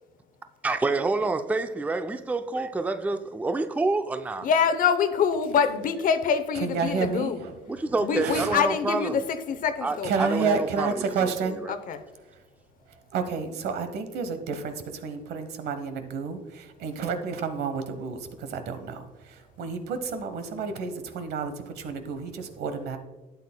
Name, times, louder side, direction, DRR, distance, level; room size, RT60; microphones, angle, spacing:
voice 1, 0.6-4.5 7.7-9.2 9.8-11.7, right 3 dB, 10° right, 0.4 m, -28 dB
voice 2, 4.4-7.4 8.0-10.1 11.7-12.0, left 6 dB, 55° left, 0.8 m, -25 dB
voice 3, 6.5-7.6 8.2-8.5 10.0-11.7 13.1-14.7 15.0-23.0, right 5 dB, 75° right, 1.0 m, -30 dB
12.0 x 8.3 x 2.2 m
cardioid pair, 110°, 17 cm